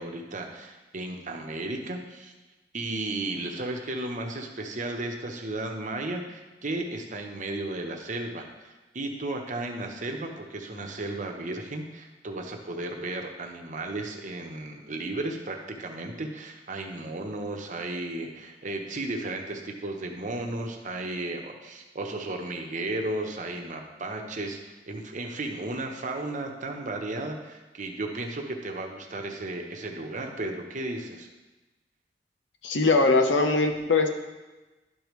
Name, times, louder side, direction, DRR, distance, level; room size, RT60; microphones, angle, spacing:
voice 1, 0.0-2.3 2.7-31.3, right 2 dB, 45° right, 2 dB, 0.9 m, -34 dB
voice 2, 32.6-34.1, left 3 dB, 75° left, 5 dB, 0.8 m, -21 dB
11.5 x 5.1 x 3.2 m, 1.1 s
head